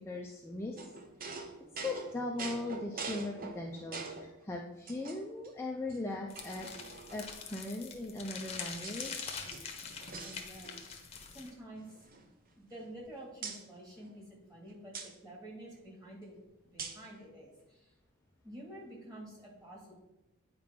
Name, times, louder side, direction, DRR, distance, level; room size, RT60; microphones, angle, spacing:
voice 1, 0.1-0.9 1.3-1.5 1.8-6.7 7.1-9.4, left 2 dB, 10° left, -1 dB, 0.5 m, -39 dB
sound 1, 0.8-4.3 4.9-5.5 5.9-6.0 6.3-7.4 8.2-9.1 9.4-11.0 11.2-11.4 11.7-13.0 13.4-13.6 14.9-15.1 16.8-17.1, right 4 dB, 40° right, 0.7 m, -45 dB
sound 2, 6.3-11.5, left 6 dB, 30° left, 0.9 m, -44 dB
voice 2, 10.2-10.8 11.3-12.1 12.5-16.4 16.7-17.9 18.4-20.0, right 1 dB, 15° right, -4 dB, 2.3 m, -49 dB
9.0 x 4.8 x 3.8 m, 0.94 s
head